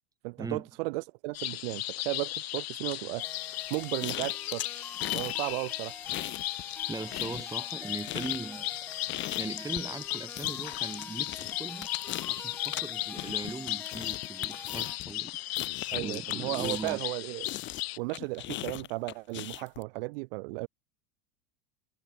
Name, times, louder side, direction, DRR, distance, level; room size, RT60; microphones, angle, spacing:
voice 1, 0.2-3.3 3.7-4.7 5.1-6.0 15.9-17.5 18.0-20.7, right 25 dB, 65° right, 1.7 m, -35 dB
sound 1, 1.3-18.0, left 17 dB, 90° left, 0.7 m, -36 dB
sound 2, 3.2-15.0, left 2 dB, 5° left, 1.1 m, -48 dB
sound 3, 3.7-5.4 5.7-6.8 7.1-17.1 17.4-19.8, left 15 dB, 40° left, 1.4 m, -39 dB
voice 2, 6.9-8.8 9.4-11.9 12.3-15.3 15.6-17.0, right 3 dB, 10° right, 5.0 m, -40 dB
supercardioid pair, 120°, 30 cm